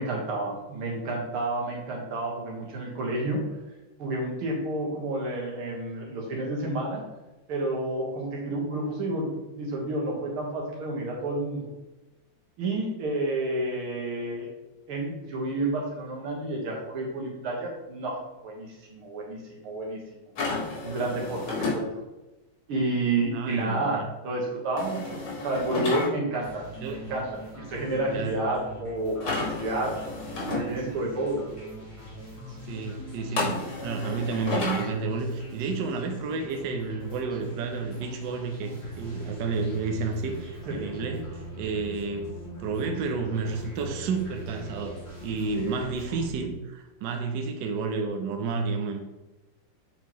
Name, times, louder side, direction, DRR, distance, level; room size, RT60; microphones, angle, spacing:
voice 1, 0.0-3.4 4.0-7.0 7.5-11.7 12.6-14.5 14.9-20.3 20.8-21.4 21.7-21.9 22.7-26.6 26.9-27.3 27.6-29.9 30.5-31.4 40.7-40.9 45.5-45.8, right 2 dB, 85° right, -2 dB, 2.3 m, -30 dB
sound 1, 20.3-21.8 24.8-26.1 29.2-30.6 33.4-34.9, left 3 dB, 90° left, 2.4 m, -31 dB
voice 2, 23.3-24.0 26.8-27.0 28.1-28.4 32.7-42.3 42.6-49.2, right 4 dB, 70° right, 4 dB, 1.2 m, -31 dB
sound 2, 26.4-46.3, equal, 15° left, 1.5 m, -42 dB
7.3 x 4.5 x 3.0 m, 1.1 s
omnidirectional pair, 2.3 m